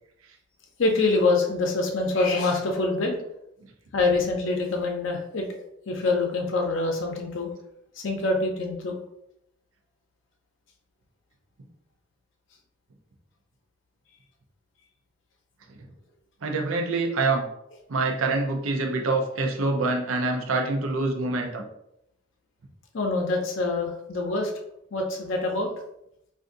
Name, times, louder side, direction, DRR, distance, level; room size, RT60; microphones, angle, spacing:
voice 1, 0.8-3.2 3.9-5.4 5.9-7.5 8.0-8.9 22.9-24.5 24.9-25.8, left 3 dB, 65° left, 2 dB, 0.5 m, -25 dB
voice 2, 16.4-17.5 17.9-21.6, right 3 dB, 90° right, 3 dB, 0.6 m, -26 dB
2.6 x 2.5 x 3.7 m, 0.80 s
head